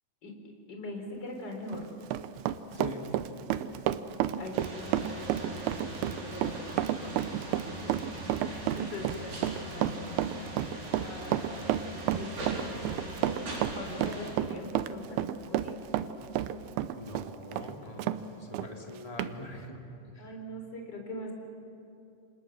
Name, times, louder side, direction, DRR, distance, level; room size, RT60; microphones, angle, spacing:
voice 1, 0.7-2.0 4.4-7.9 8.2-11.9 12.1-13.5 13.7-15.9 20.2-21.3, left 1 dB, 30° left, 2 dB, 4.1 m, -43 dB
Run, 1.5-18.2 18.5-18.7 19.2-19.3, right 11 dB, 85° right, 2.7 m, -32 dB
sound 1, 4.5-14.3, right 1 dB, 70° right, 6.2 m, -41 dB
voice 2, 17.0-19.8 20.1-20.3, left 1 dB, 10° left, 0 dB, 2.1 m, -43 dB
28.5 x 27.0 x 6.5 m, 2.7 s
omnidirectional pair, 4.3 m